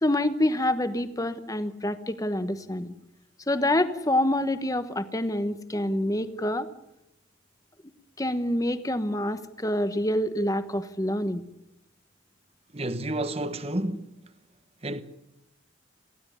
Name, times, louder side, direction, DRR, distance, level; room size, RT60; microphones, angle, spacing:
voice 1, 0.0-2.9 3.5-6.7 8.2-11.4, left 1 dB, 15° left, 1.1 m, -27 dB
voice 2, 12.7-14.2 14.8-15.0, right 1 dB, 30° right, 1.2 m, -30 dB
19.0 x 15.5 x 10.0 m
head